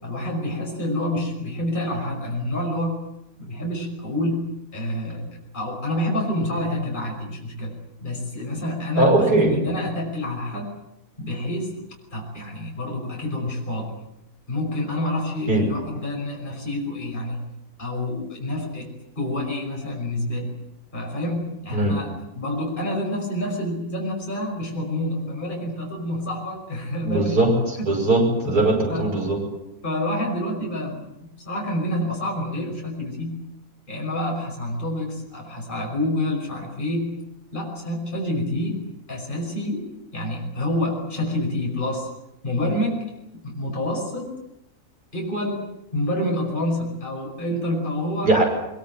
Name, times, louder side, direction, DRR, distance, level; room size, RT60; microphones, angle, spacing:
voice 1, 0.0-3.0 3.4-5.2 5.5-7.7 8.0-10.7 11.2-11.8 12.1-13.8 14.5-17.4 17.8-18.9 19.2-20.6 20.9-27.9 28.9-29.1 29.8-31.1 31.4-33.4 33.9-37.1 37.5-38.8 39.1-39.9 40.1-42.1 42.4-43.1 43.4-44.4 45.1-48.3, left 1 dB, 30° left, -1 dB, 6.0 m, -28 dB
voice 2, 9.0-9.5 15.5-15.7 21.7-21.9 27.0-29.4 48.2-48.4, right 2 dB, 80° right, 1 dB, 6.5 m, -20 dB
22.5 x 22.5 x 9.0 m, 0.85 s
omnidirectional pair, 1.6 m